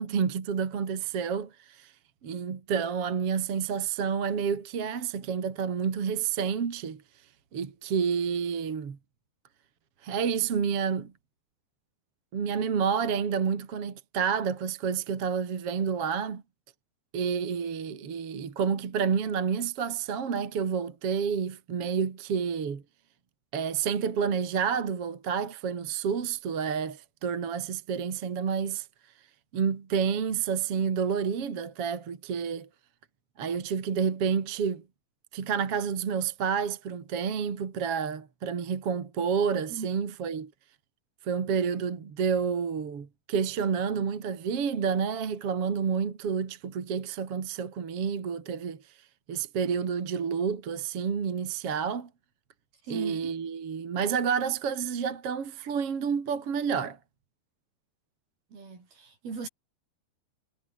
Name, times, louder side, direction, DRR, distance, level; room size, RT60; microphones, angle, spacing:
voice 1, 0.0-1.9 2.2-7.0 7.5-9.0 10.0-11.1 12.3-16.4 17.1-22.8 23.5-28.9 29.5-32.7 33.4-34.8 35.3-40.5 41.2-48.8 49.3-52.1 52.9-57.0, right 6 dB, 40° right, 2.8 m, -29 dB
voice 2, 52.9-53.3 58.5-59.5, right 4 dB, 55° right, 8.7 m, -38 dB
omnidirectional pair, 5.1 m